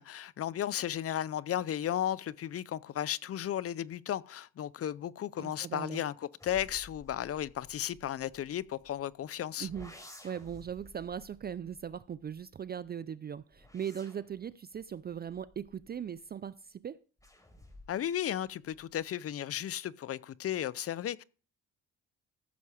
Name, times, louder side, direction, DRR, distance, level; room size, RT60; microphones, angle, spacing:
voice 1, 0.0-9.7 17.9-21.2, left 11 dB, 50° left, 0.6 m, -34 dB
voice 2, 5.4-6.0 9.6-9.9 10.2-17.0, right 8 dB, 35° right, 0.4 m, -39 dB
sound 1, 6.4-9.1 9.6-12.7 13.3-16.4 17.2-18.1 18.4-19.0, left 1 dB, 10° left, 4.1 m, -55 dB
14.5 x 6.7 x 4.9 m
cardioid pair, 90°, 30 cm